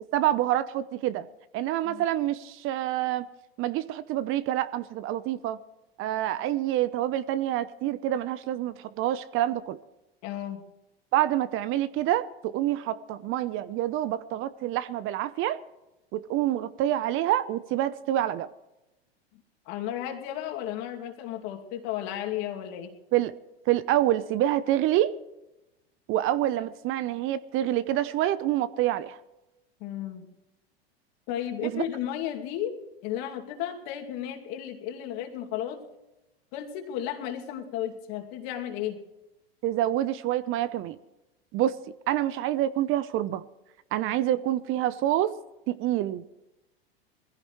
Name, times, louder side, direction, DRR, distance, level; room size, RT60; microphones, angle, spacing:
voice 1, 0.1-1.3 1.5-3.3 3.6-5.6 6.0-9.8 11.1-15.6 16.1-18.5 23.1-23.3 23.7-25.1 26.1-29.2 31.6-31.8 39.6-41.0 41.5-41.8 42.1-43.4 43.9-45.3 45.7-46.2, right 13 dB, 40° right, 0.8 m, -27 dB
voice 2, 10.2-10.6 19.7-22.9 29.8-30.3 31.3-35.8 36.5-39.0, left 11 dB, 55° left, 2.6 m, -34 dB
21.5 x 15.5 x 3.2 m
hypercardioid pair, 105°, 31 cm